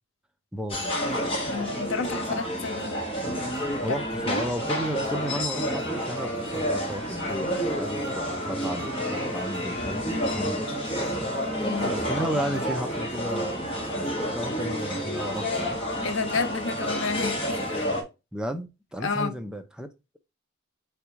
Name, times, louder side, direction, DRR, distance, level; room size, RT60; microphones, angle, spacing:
voice 1, 0.5-1.0 3.8-8.9 9.1-10.7 11.0-11.3 11.9-13.7 14.3-15.8 18.3-19.9, equal, 5° right, 0.3 m, -33 dB
sound 1, 0.7-18.0, equal, 30° left, 1.1 m, -30 dB
sound 2, 1.0-17.7, right 2 dB, 65° right, 1.5 m, -40 dB
voice 2, 1.5-3.0 3.8-4.0 4.3-4.4 11.7-12.0 16.0-17.8 19.0-19.3, left 4 dB, 70° left, 0.6 m, -30 dB
4.2 x 3.5 x 3.0 m
head